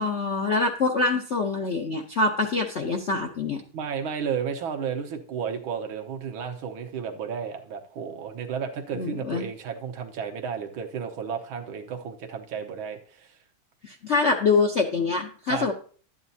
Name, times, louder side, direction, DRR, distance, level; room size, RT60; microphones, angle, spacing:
voice 1, 0.0-3.6 8.9-9.5 13.8-15.7, left 3 dB, 55° left, 2 dB, 0.7 m, -25 dB
voice 2, 3.7-13.4 15.5-15.7, right 7 dB, 80° right, 5 dB, 1.8 m, -33 dB
11.5 x 9.2 x 2.7 m, 0.42 s
omnidirectional pair, 2.2 m